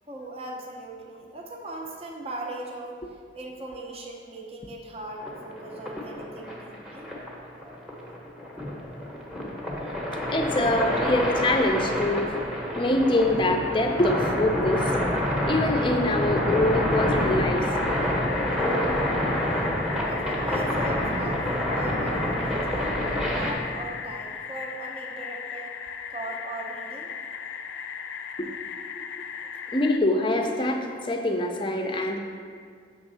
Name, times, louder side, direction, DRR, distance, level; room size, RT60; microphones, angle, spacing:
voice 1, 0.1-7.1 20.0-22.9 23.3-25.7 26.1-27.1 29.4-29.5, right 2 dB, 35° right, 0 dB, 0.6 m, -39 dB
sound 1, 5.2-23.5, left 1 dB, 5° right, 0.8 m, -27 dB
voice 2, 10.3-12.4 12.7-14.9 15.5-17.7 28.4-28.5 29.7-32.2, left 1 dB, 25° left, 3 dB, 0.5 m, -24 dB
sound 2, 17.7-30.0, left 7 dB, 90° left, 0.3 m, -37 dB
7.2 x 3.5 x 5.5 m, 2.1 s
head